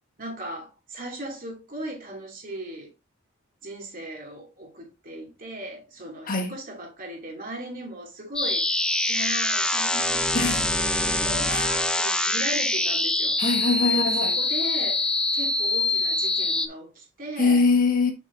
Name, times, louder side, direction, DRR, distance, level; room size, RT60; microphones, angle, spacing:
voice 1, 0.2-2.9 3.6-13.4 13.9-17.6, right 1 dB, 45° right, 2.6 m, -37 dB
sound 1, 8.4-16.7, left 2 dB, 5° left, 0.5 m, -24 dB
voice 2, 10.3-10.7 11.5-11.7 13.4-14.3 17.4-18.1, left 3 dB, 45° left, 1.3 m, -23 dB
6.9 x 6.1 x 2.6 m
head